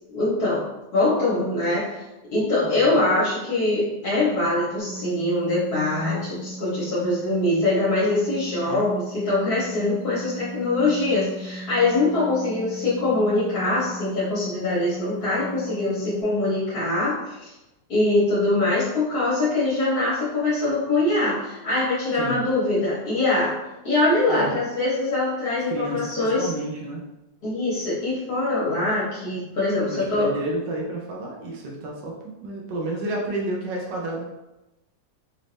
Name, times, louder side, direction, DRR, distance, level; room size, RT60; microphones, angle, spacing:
voice 1, 0.1-0.6 0.9-2.0 2.3-17.5 17.9-23.5 23.8-26.5 27.4-30.3, left 2 dB, 60° left, -9 dB, 1.6 m, -23 dB
voice 2, 2.6-3.0 8.7-8.9 22.1-22.4 24.3-24.6 25.7-27.0 29.7-34.2, right 1 dB, 85° right, -1 dB, 1.3 m, -31 dB
sound 1, 4.8-16.2, right 1 dB, 35° left, 1.5 m, -37 dB
4.1 x 2.6 x 3.3 m, 0.97 s
omnidirectional pair, 1.9 m